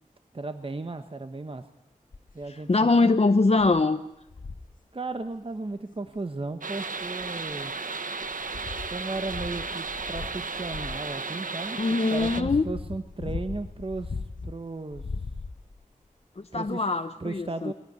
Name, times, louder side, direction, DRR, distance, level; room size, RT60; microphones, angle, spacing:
voice 1, 0.3-1.7 2.3-3.1 4.9-7.7 8.9-15.1 16.5-16.9 17.2-17.7, right 3 dB, 40° right, 9 dB, 1.1 m, -35 dB
sound 1, 2.1-2.4 3.0-3.1 3.6-3.8 4.3-4.7 6.1-6.2 7.0-7.7 8.2-11.1 11.8-14.6 14.9-15.8 16.7-16.8, left 4 dB, 80° left, 1.0 m, -38 dB
voice 2, 2.5-4.0 11.8-12.6 16.4-17.7, left 3 dB, 50° left, 8 dB, 0.8 m, -23 dB
sound 2, 6.6-12.4, right 4 dB, 85° right, 1.1 m, -34 dB
22.5 x 17.5 x 9.5 m, 0.86 s
wide cardioid pair, 70°, 14 cm